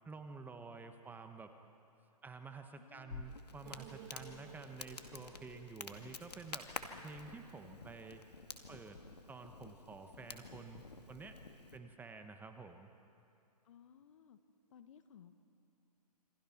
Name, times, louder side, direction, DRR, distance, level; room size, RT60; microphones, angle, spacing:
voice 1, 0.0-1.5 2.2-6.7 7.0-8.2 8.7-9.0 9.3-11.4 11.7-12.9, right 4 dB, 10° right, 7 dB, 1.1 m, -50 dB
voice 2, 2.7-3.3 4.2-4.6 13.6-14.4 14.7-15.3, left 8 dB, 50° left, 10 dB, 1.6 m, -60 dB
Crackle, 3.1-11.8, left 4 dB, 80° left, 2.2 m, -50 dB
sound 1, 3.6-7.8 8.0-8.1 8.5-8.6, right 15 dB, 25° right, 0.6 m, -59 dB
28.5 x 26.0 x 5.9 m, 2.6 s
figure-of-eight pair, 130°, 20 cm